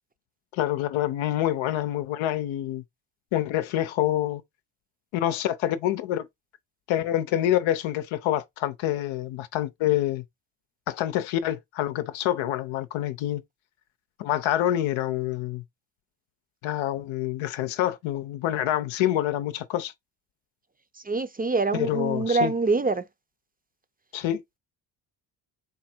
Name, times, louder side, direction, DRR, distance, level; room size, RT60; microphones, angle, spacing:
voice 1, 0.5-2.8 3.3-4.4 5.1-6.3 6.9-10.2 10.9-13.4 14.2-15.6 16.6-19.9 21.7-22.5 24.1-24.4, left 12 dB, 90° left, 0.7 m, -27 dB
voice 2, 20.9-23.1, right 3 dB, 20° right, 0.5 m, -25 dB
3.9 x 2.5 x 4.3 m
cardioid pair, 65°, 46 cm